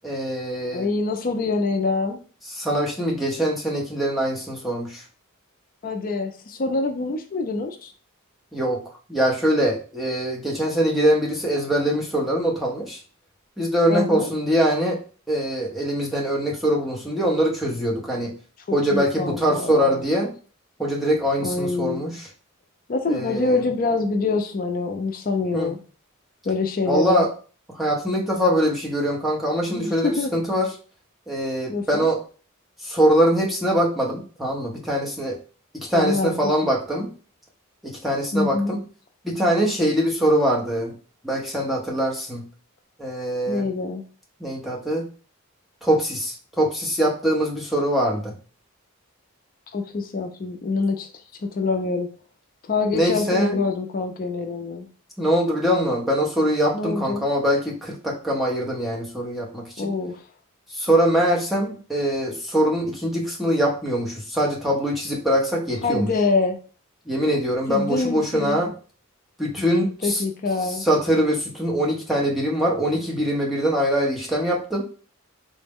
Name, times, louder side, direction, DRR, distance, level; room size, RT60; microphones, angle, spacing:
voice 1, 0.0-0.9 2.5-5.0 8.5-8.8 9.1-13.0 13.6-15.0 15.3-18.3 18.7-20.3 20.8-22.3 23.1-23.7 25.5-25.7 26.8-27.3 27.7-30.7 31.3-32.2 32.8-35.4 35.7-37.1 37.8-38.8 39.2-40.9 41.2-42.4 43.0-43.7 44.4-45.1 45.8-48.3 52.9-53.6 55.2-59.9 60.7-66.1 67.1-68.7 69.4-70.2 70.6-74.8, equal, ahead, -3 dB, 0.7 m, -23 dB
voice 2, 0.7-2.2 5.8-7.9 13.9-14.3 18.7-20.0 21.4-22.0 22.9-25.8 26.4-27.3 29.7-30.3 31.7-32.1 35.9-36.3 36.6-36.7 38.3-38.7 43.5-44.0 49.7-51.1 51.4-52.1 52.7-54.9 56.7-57.3 59.8-60.2 65.8-66.6 67.7-68.6 70.0-70.8, left 3 dB, 40° left, 5 dB, 0.4 m, -25 dB
3.8 x 2.1 x 3.4 m, 0.39 s
head